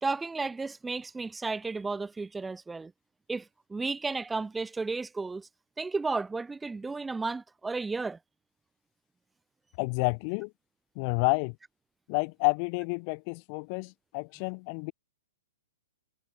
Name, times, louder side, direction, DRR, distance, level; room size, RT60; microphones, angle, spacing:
voice 1, 0.0-2.9 3.3-3.4 3.7-5.5 5.8-8.2, right 3 dB, 10° right, 1.4 m, -33 dB
voice 2, 9.8-10.5 11.0-11.6 12.1-14.9, left 38 dB, 40° left, 2.3 m, -29 dB
hypercardioid pair, 125°, 0 cm